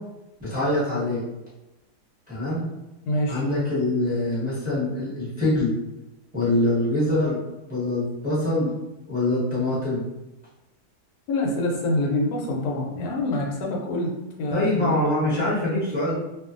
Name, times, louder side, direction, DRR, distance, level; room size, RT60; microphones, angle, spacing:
voice 1, 0.4-1.2 2.3-2.6 3.3-5.7 6.3-7.4 7.7-8.7 9.1-10.0 14.5-16.1, left 1 dB, 5° right, -10 dB, 0.9 m, -24 dB
voice 2, 3.0-3.4 11.3-14.1 14.4-15.4, left 1 dB, 80° left, -1 dB, 1.1 m, -26 dB
2.6 x 2.4 x 2.4 m, 0.98 s
omnidirectional pair, 1.7 m